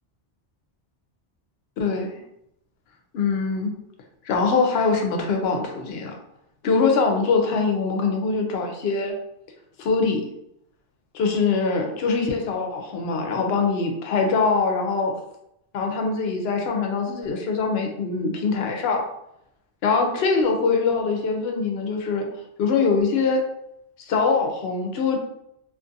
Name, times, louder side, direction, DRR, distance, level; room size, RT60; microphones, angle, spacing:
voice 1, 1.8-2.1 3.1-3.7 4.3-6.1 6.6-9.2 9.8-10.2 11.1-15.1 15.7-19.1 19.8-22.3 22.6-23.4 24.1-25.2, left 4 dB, 75° left, 2 dB, 0.8 m, -23 dB
2.5 x 2.4 x 2.6 m, 0.79 s
omnidirectional pair, 1.1 m